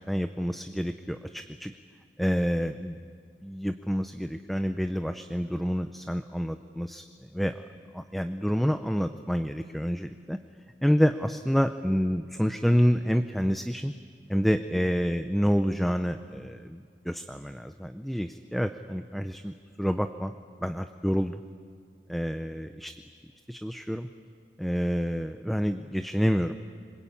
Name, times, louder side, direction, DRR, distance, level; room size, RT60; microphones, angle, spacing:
voice 1, 0.1-1.7 2.2-3.0 3.4-7.0 7.3-7.6 7.9-10.4 10.8-13.9 14.3-20.3 20.6-21.4 22.1-22.9 23.5-24.1 24.6-26.5, equal, ahead, 8 dB, 0.6 m, -28 dB
26.5 x 22.0 x 8.5 m, 2.1 s
head